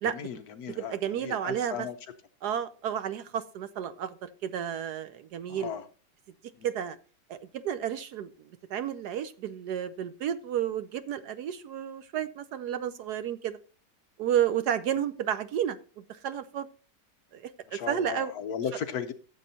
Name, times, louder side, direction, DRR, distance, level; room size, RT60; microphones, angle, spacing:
voice 1, 0.0-2.0 5.5-5.9 17.7-19.1, left 7 dB, 65° left, 1.1 m, -36 dB
voice 2, 0.8-1.9 2.4-5.7 6.6-7.0 7.3-8.3 8.7-13.6 14.2-16.7 17.3-18.3, right 9 dB, 70° right, 1.0 m, -31 dB
14.5 x 7.5 x 2.7 m
omnidirectional pair, 2.0 m